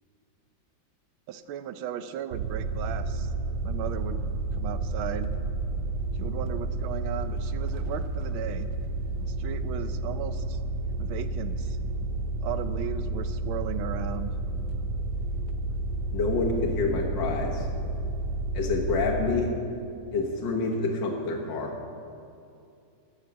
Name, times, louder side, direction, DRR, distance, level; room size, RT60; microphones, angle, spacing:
voice 1, 1.3-3.3 3.6-4.2 4.5-5.3 6.2-8.7 9.2-10.6 11.0-11.8 12.4-14.4, right 9 dB, 90° right, 11 dB, 1.5 m, -36 dB
sound 1, 2.3-19.3, right 2 dB, 75° right, 1.3 m, -31 dB
voice 2, 16.1-17.7 18.5-19.5 20.1-21.7, left 3 dB, 65° left, -1 dB, 2.0 m, -27 dB
14.5 x 6.6 x 9.1 m, 2.6 s
omnidirectional pair, 2.2 m